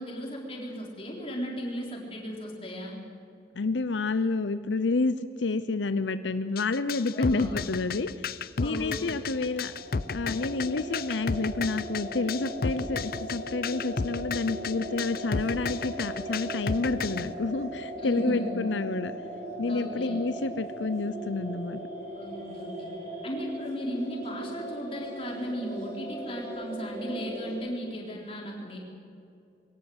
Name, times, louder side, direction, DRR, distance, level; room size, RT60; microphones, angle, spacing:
voice 1, 0.0-3.0 7.1-7.6 8.6-9.1 18.0-18.6 19.7-20.2 22.2-22.9 23.2-28.8, equal, 30° left, -1 dB, 4.1 m, -35 dB
voice 2, 3.6-8.3 8.6-9.7 10.1-19.1 19.6-21.8, left 3 dB, 85° left, 12 dB, 0.7 m, -29 dB
sound 1, 6.6-17.3, left 5 dB, 55° left, 0.6 m, -33 dB
sound 2, 9.3-27.5, right 1 dB, 40° right, 6.0 m, -39 dB
22.0 x 18.0 x 8.0 m, 2.6 s
head